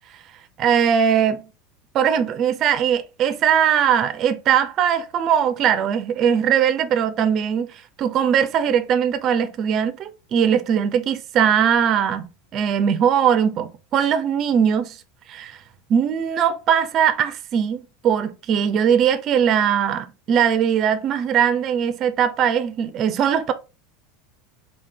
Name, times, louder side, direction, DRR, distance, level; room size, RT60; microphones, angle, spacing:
voice 1, 0.6-1.4 1.9-7.7 8.0-15.0 15.3-15.6 15.9-23.5, right 8 dB, 40° right, 0.4 m, -20 dB
3.6 x 2.4 x 3.3 m
figure-of-eight pair, 80°, 0 cm